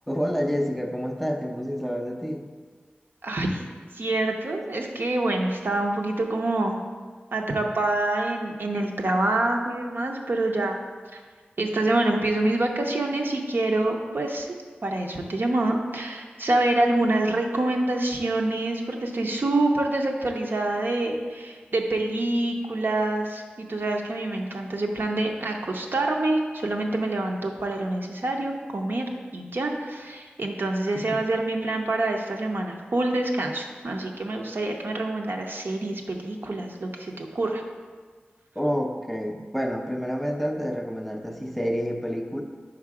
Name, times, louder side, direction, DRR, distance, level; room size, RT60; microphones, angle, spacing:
voice 1, 0.1-2.5 30.9-31.0 38.6-42.4, equal, 5° left, 3 dB, 0.5 m, -28 dB
voice 2, 3.2-3.6 3.9-6.8 7.3-10.8 11.1-11.2 11.6-14.6 14.8-29.1 29.3-37.6, right 2 dB, 65° right, 1 dB, 0.7 m, -26 dB
5.0 x 4.8 x 4.8 m, 1.5 s
wide cardioid pair, 75°, 4 cm